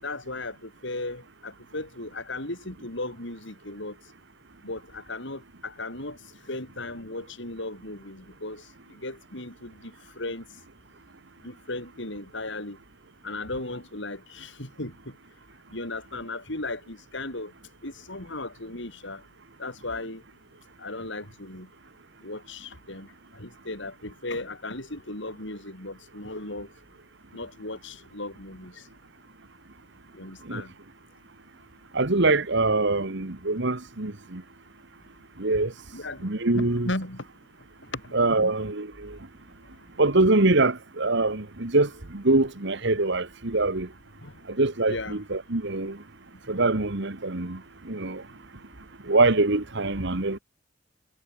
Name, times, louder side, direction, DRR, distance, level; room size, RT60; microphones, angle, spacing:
voice 1, 0.0-3.9 4.6-6.2 6.5-8.6 9.0-9.9 10.2-10.4 11.4-12.8 13.2-14.9 15.7-17.5 17.8-19.2 19.6-20.2 20.8-21.7 22.2-23.1 23.4-26.7 27.3-28.7 30.1-30.7 35.9-36.2 36.5-37.2 37.9-38.0 38.3-38.5 44.2-44.3 44.9-45.2, left 2 dB, 65° left, 7.3 m, -36 dB
voice 2, 31.9-34.4 35.4-35.7 36.2-36.9 38.1-39.2 40.0-43.9 44.6-46.0 46.5-47.6 47.9-48.2 49.1-50.4, right 2 dB, 65° right, 1.9 m, -24 dB
head